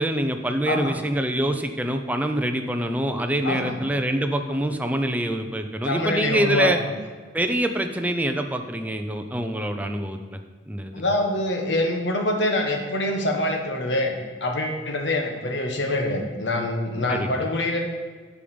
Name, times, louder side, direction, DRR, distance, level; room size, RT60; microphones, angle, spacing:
voice 1, 0.0-6.8 7.3-10.4 10.7-11.0 17.1-17.3, right 1 dB, 10° right, 5 dB, 0.6 m, -25 dB
voice 2, 0.7-1.0 3.4-3.8 5.8-6.9 10.9-17.8, left 1 dB, 85° left, 3 dB, 1.3 m, -25 dB
8.4 x 5.1 x 7.0 m, 1.5 s
head